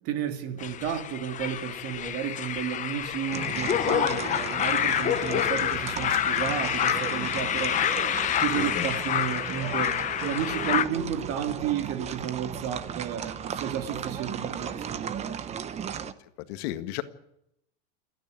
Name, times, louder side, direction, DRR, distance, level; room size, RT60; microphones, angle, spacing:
voice 1, 0.0-7.8 8.4-15.3, right 9 dB, 40° right, 2.6 m, -32 dB
sound 1, 0.6-10.8, left 10 dB, 20° left, 0.9 m, -28 dB
sound 2, 3.3-16.1, right 8 dB, 20° right, 0.8 m, -36 dB
voice 2, 8.4-8.9 16.2-17.0, left 15 dB, 60° left, 1.8 m, -35 dB
29.5 x 10.0 x 9.7 m
supercardioid pair, 160°, 36 cm